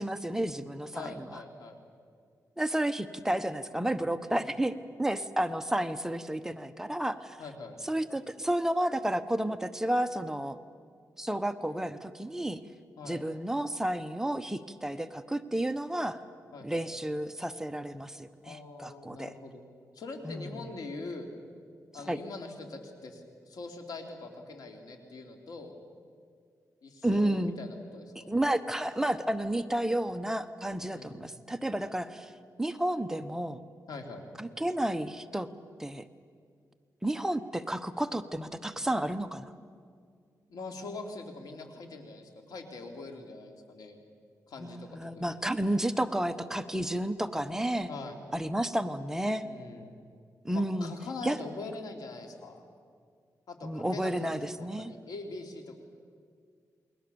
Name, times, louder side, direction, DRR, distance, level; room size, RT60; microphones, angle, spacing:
voice 1, 0.0-1.4 2.6-4.7 5.0-7.4 7.8-10.6 11.2-12.6 13.0-16.2 16.6-19.3 20.2-20.5 22.1-22.2 27.0-27.6 28.3-32.3 32.6-33.6 34.4-35.5 35.8-36.0 37.0-39.5 44.6-47.9 48.3-49.4 50.4-50.9 51.2-51.4 53.6-54.9, right 1 dB, 10° right, 9 dB, 1.0 m, -31 dB
voice 2, 0.9-1.8 4.2-4.5 7.4-7.8 13.0-13.2 16.5-16.8 18.4-19.6 19.9-21.3 21.9-25.7 26.8-28.3 30.9-31.3 33.9-34.2 40.5-44.0 44.5-44.9 45.1-45.4 47.9-48.2 49.4-49.9 50.5-52.6 53.5-55.8, left 3 dB, 90° left, 3 dB, 3.0 m, -43 dB
28.5 x 22.0 x 7.0 m, 2.1 s
wide cardioid pair, 95°, 6 cm